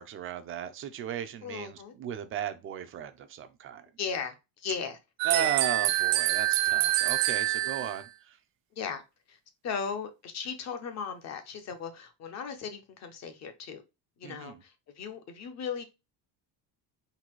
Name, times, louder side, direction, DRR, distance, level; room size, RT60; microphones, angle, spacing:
voice 1, 0.0-3.9 5.2-8.4 14.2-14.6, right 9 dB, 30° right, 0.4 m, -35 dB
voice 2, 1.4-1.9 4.0-5.0 5.3-5.5 7.0-7.1 8.8-9.0 9.3-13.8 14.2-15.8, left 6 dB, 35° left, 0.8 m, -37 dB
sound 1, 5.2-8.0, right 16 dB, 90° right, 0.5 m, -26 dB
4.0 x 2.6 x 4.4 m
cardioid pair, 175°, 44 cm